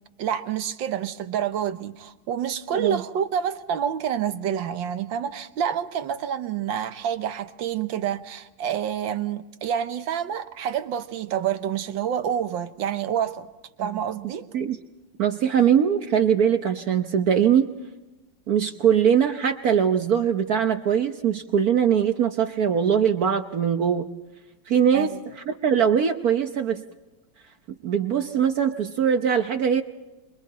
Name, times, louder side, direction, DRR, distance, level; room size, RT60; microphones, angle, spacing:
voice 1, 0.2-13.5 13.8-14.5 24.9-25.2, right 9 dB, 80° right, 1.7 m, -28 dB
voice 2, 15.2-17.7 18.5-24.1 24.7-26.8 27.8-29.8, right 8 dB, 60° right, 1.3 m, -21 dB
29.5 x 23.0 x 4.1 m
omnidirectional pair, 2.1 m